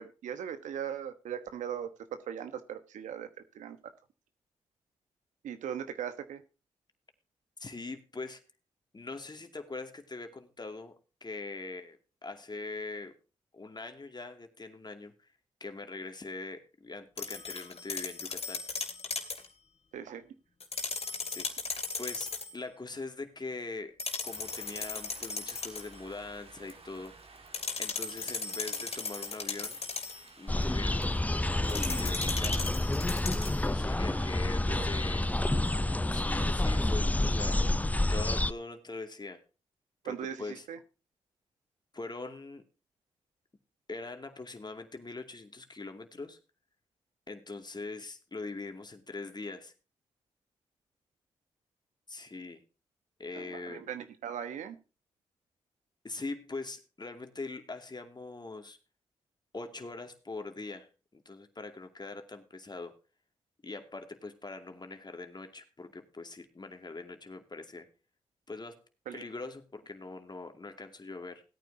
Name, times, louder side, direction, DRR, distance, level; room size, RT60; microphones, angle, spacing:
voice 1, 0.0-1.9 2.3-3.3 3.5-3.8 5.4-6.4 19.9-20.3 34.1-34.3 34.6-34.9 40.0-40.8 53.3-54.7 69.1-69.2, right 9 dB, 85° right, 10 dB, 1.2 m, -39 dB
voice 2, 7.6-8.4 8.9-13.2 13.5-15.1 15.6-18.7 21.3-21.7 22.0-24.0 24.2-27.2 27.8-29.8 30.4-31.3 31.7-32.7 33.5-35.3 36.1-37.6 38.1-39.4 40.0-40.7 41.9-42.6 43.9-46.4 47.3-49.7 52.1-52.6 53.2-53.8 56.0-58.8 59.5-62.9 63.6-67.9 68.5-68.8 69.1-71.4, left 3 dB, 35° left, 6 dB, 2.5 m, -42 dB
sound 1, 17.2-19.5 20.6-22.5 24.0-25.9 27.5-30.3 31.7-33.7, left 4 dB, 55° left, 2.7 m, -37 dB
Rain, 24.2-32.2, right 3 dB, 50° right, 2.5 m, -54 dB
sound 2, 30.5-38.5, left 1 dB, 10° left, 0.5 m, -29 dB
17.5 x 9.3 x 2.8 m, 0.32 s
supercardioid pair, 40°, 12 cm